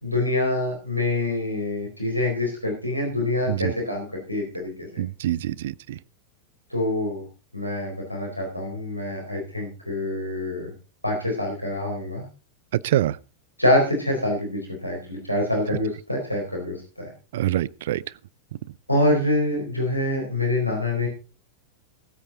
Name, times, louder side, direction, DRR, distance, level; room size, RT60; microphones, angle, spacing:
voice 1, 0.0-4.9 6.7-7.2 7.5-10.7 11.0-12.2 13.6-17.1 18.9-21.1, left 1 dB, 90° left, 4.3 m, -25 dB
voice 2, 5.0-6.0 12.7-13.2 17.3-18.0, right 13 dB, 55° right, 0.5 m, -25 dB
19.5 x 8.8 x 3.9 m
figure-of-eight pair, 90°, 0 cm